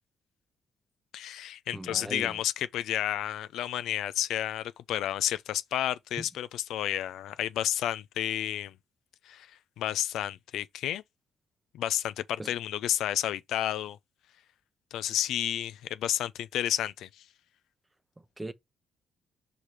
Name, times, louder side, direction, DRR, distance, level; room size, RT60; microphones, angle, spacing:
voice 1, 1.1-8.7 9.2-9.5 9.8-11.0 11.7-14.0 14.9-17.1, left 11 dB, 80° left, 0.4 m, -31 dB
voice 2, 1.7-2.4 6.2-6.3 12.4-12.5 18.2-18.5, right 2 dB, 15° right, 0.8 m, -39 dB
4.9 x 4.9 x 4.4 m
cardioid pair, 90°, 0 cm